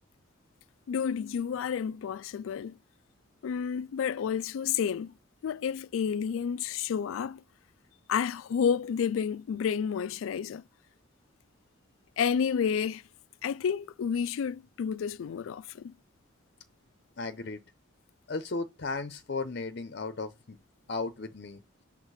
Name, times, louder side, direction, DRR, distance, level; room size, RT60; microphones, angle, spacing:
voice 1, 0.9-2.8 3.4-5.1 5.4-7.4 8.1-10.6 12.2-13.0 13.4-15.9, left 7 dB, 90° left, 0.3 m, -30 dB
voice 2, 17.2-17.6 18.3-20.6 20.9-21.6, left 3 dB, 55° left, 0.7 m, -35 dB
6.5 x 3.5 x 4.9 m
head